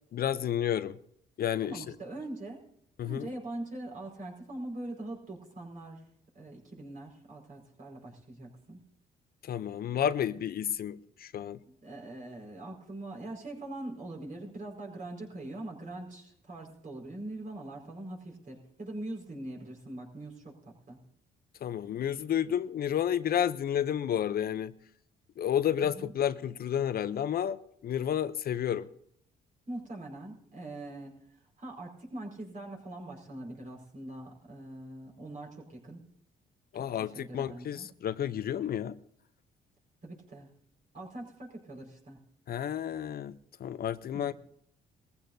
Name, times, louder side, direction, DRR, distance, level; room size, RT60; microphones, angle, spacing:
voice 1, 0.1-1.0 1.4-1.8 3.0-3.3 9.4-11.6 21.6-24.7 25.4-28.9 36.7-39.0 42.5-44.3, left 9 dB, 55° left, 0.6 m, -31 dB
voice 2, 1.6-2.6 3.0-6.0 6.3-8.8 11.7-21.0 25.8-26.1 29.7-36.0 36.7-37.9 40.0-40.5 40.9-42.2 44.1-44.3, right 1 dB, 45° right, 4.8 m, -42 dB
21.0 x 15.0 x 2.7 m
cardioid pair, 85°, 18 cm